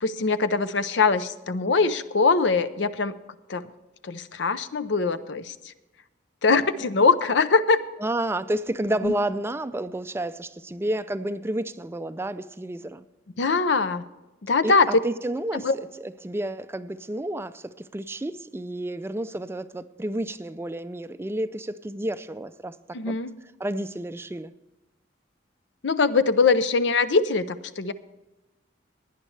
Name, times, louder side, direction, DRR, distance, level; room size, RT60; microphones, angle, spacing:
voice 1, 0.0-3.2 3.5-3.6 4.0-5.5 6.4-7.8 9.0-9.1 13.4-14.0 14.4-15.0 15.5-15.7 22.9-23.3 25.8-27.9, left 4 dB, 70° left, 13 dB, 0.6 m, -22 dB
voice 2, 8.0-13.0 14.6-15.7 16.0-22.8 23.1-23.2 23.6-24.5, right 1 dB, 15° right, 12 dB, 0.4 m, -30 dB
17.0 x 10.0 x 3.3 m, 1.0 s
head